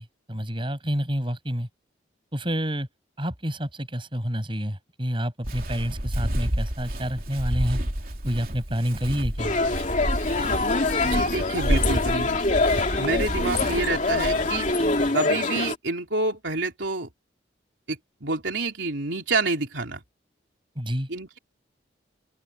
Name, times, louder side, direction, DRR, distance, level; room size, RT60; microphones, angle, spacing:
voice 1, 0.0-1.7 2.3-2.9 3.2-7.8 8.2-9.5 20.7-21.1, equal, 25° right, 7.9 m, -28 dB
Walk footsteps, 5.4-15.1, equal, 45° right, 3.4 m, -30 dB
sound 1, 9.4-15.7, left 3 dB, 40° left, 2.8 m, -24 dB
voice 2, 11.0-12.4 13.0-14.7 15.1-17.1 17.9-20.0 21.1-21.4, right 3 dB, 70° right, 3.4 m, -28 dB
open air
head